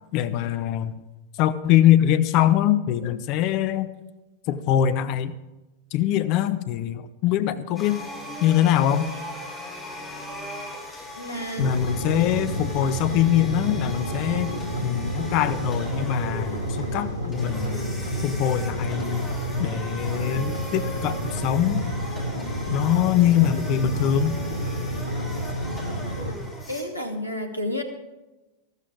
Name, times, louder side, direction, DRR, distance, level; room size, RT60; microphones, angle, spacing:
voice 1, 0.1-0.9 1.4-3.9 4.5-5.4 5.9-8.0 8.4-9.1 11.6-14.5 14.8-17.8 18.2-19.3 19.6-21.8 22.7-24.4, left 11 dB, 40° left, 12 dB, 0.8 m, -23 dB
sound 1, 7.7-26.8, left 1 dB, 15° left, 4.3 m, -39 dB
voice 2, 11.2-11.7 26.7-27.8, left 1 dB, 85° left, 5 dB, 1.5 m, -30 dB
sound 2, 11.6-26.3, equal, 80° right, 2.0 m, -29 dB
14.0 x 13.5 x 4.8 m, 1.1 s
figure-of-eight pair, 90°, 0 cm